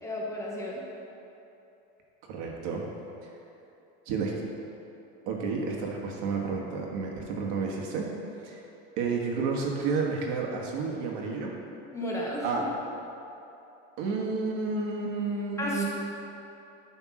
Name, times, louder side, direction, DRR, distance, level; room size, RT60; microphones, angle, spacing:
voice 1, 0.0-0.8 11.9-12.7 15.6-15.8, equal, 10° left, -4 dB, 0.8 m, -33 dB
voice 2, 2.3-2.8 4.1-4.3 5.3-8.1 8.4-8.6 9.0-11.5 12.4-12.8 14.0-15.8, right 4 dB, 60° right, -1 dB, 1.4 m, -31 dB
9.7 x 3.6 x 6.1 m, 2.9 s
cardioid pair, 160°, 29 cm